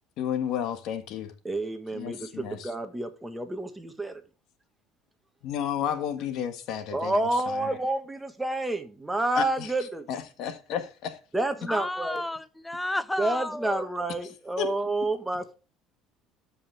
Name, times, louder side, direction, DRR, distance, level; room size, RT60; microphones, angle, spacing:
voice 1, 0.2-1.3 1.9-2.6 5.4-7.2 7.5-7.7 9.3-9.7 10.1-11.2 14.6-14.7, left 9 dB, 65° left, 1.6 m, -32 dB
voice 2, 1.4-4.2 6.9-10.1 11.3-12.2 13.2-15.5, right 2 dB, 10° right, 1.5 m, -29 dB
voice 3, 11.7-13.8, left 1 dB, 10° left, 0.6 m, -32 dB
13.0 x 5.4 x 3.4 m
supercardioid pair, 105°, 0 cm